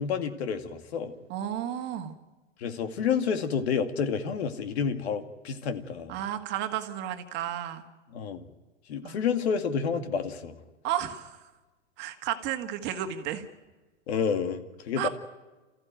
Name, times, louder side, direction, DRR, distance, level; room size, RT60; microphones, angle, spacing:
voice 1, 0.0-1.1 2.6-6.2 8.1-8.5 8.9-10.6 14.1-15.1, left 6 dB, 60° left, 8 dB, 2.4 m, -29 dB
voice 2, 1.3-2.2 6.1-7.8 9.0-9.2 10.8-11.4 12.0-13.4 15.0-15.1, right 11 dB, 30° right, 6 dB, 1.9 m, -32 dB
28.0 x 15.0 x 9.2 m, 1.2 s
hypercardioid pair, 145°, 36 cm